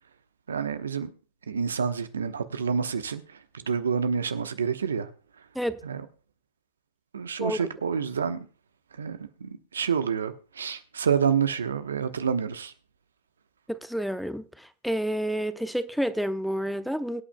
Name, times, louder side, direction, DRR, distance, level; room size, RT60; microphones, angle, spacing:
voice 1, 0.5-1.1 1.5-5.1 5.8-6.1 7.1-8.5 8.9-12.7, right 6 dB, 85° right, 1.0 m, -28 dB
voice 2, 13.7-17.2, equal, ahead, 0.7 m, -29 dB
23.5 x 8.7 x 2.3 m
hypercardioid pair, 100°, 0 cm